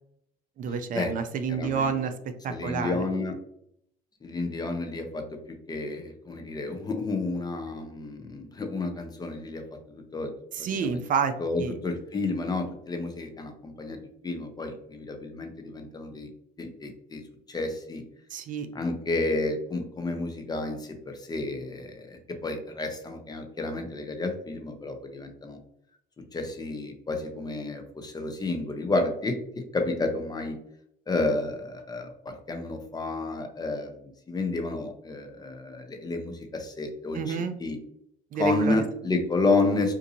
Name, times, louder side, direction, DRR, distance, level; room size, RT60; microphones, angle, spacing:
voice 1, 0.6-2.1 2.4-3.0 10.5-11.8 18.3-18.7 37.1-37.6 38.3-38.8, right 6 dB, 55° right, 8 dB, 0.4 m, -29 dB
voice 2, 1.5-1.9 2.5-3.4 4.2-10.3 10.6-11.0 11.4-14.0 14.2-16.3 16.6-17.2 17.5-18.0 18.7-25.6 26.3-30.6 31.1-37.8 38.4-39.9, left 2 dB, 25° left, 5 dB, 0.6 m, -31 dB
3.9 x 2.6 x 2.6 m, 0.72 s
cardioid pair, 110°, 17 cm